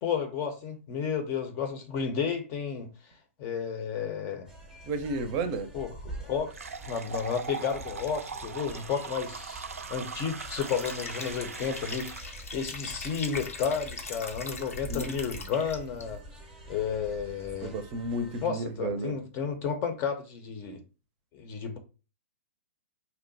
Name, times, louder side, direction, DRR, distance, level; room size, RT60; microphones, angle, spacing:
voice 1, 0.0-2.9 3.4-4.5 5.7-6.5 6.9-9.6 9.9-16.2 16.7-17.7 18.4-20.8 21.3-21.8, left 6 dB, 35° left, 0.6 m, -32 dB
sound 1, 4.5-18.5, right 1 dB, 5° right, 0.7 m, -46 dB
voice 2, 4.9-5.7 14.9-15.1 17.6-19.1, right 2 dB, 35° right, 0.6 m, -32 dB
sound 2, 6.5-12.4, right 5 dB, 90° right, 0.4 m, -40 dB
Liquid, 10.5-16.0, left 4 dB, 85° left, 0.7 m, -41 dB
2.8 x 2.1 x 3.9 m
hypercardioid pair, 125°, 7 cm